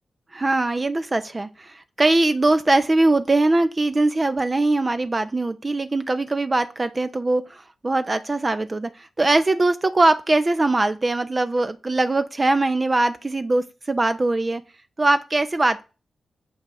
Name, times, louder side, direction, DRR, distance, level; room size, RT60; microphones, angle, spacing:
voice 1, 0.3-14.6 15.0-15.8, right 2 dB, 35° right, 11 dB, 0.6 m, -21 dB
7.0 x 5.1 x 6.1 m, 0.32 s
supercardioid pair, 45°, 0 cm